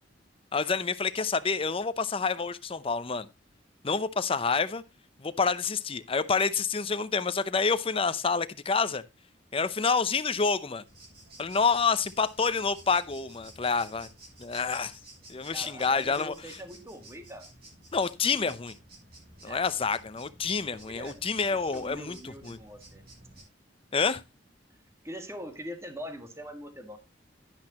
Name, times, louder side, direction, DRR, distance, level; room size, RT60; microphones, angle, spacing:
voice 1, 0.5-3.3 3.8-4.8 5.2-9.0 9.5-10.8 11.4-14.1 14.4-15.0 15.3-16.6 17.9-18.7 19.4-22.6 23.9-24.2, left 5 dB, 30° left, 0.7 m, -28 dB
sound 1, 10.9-23.4, right 1 dB, 55° right, 7.3 m, -53 dB
voice 2, 15.5-17.5 19.4-19.6 20.7-21.2 21.5-23.0 25.0-27.0, equal, 15° right, 1.8 m, -42 dB
11.0 x 10.5 x 2.9 m
head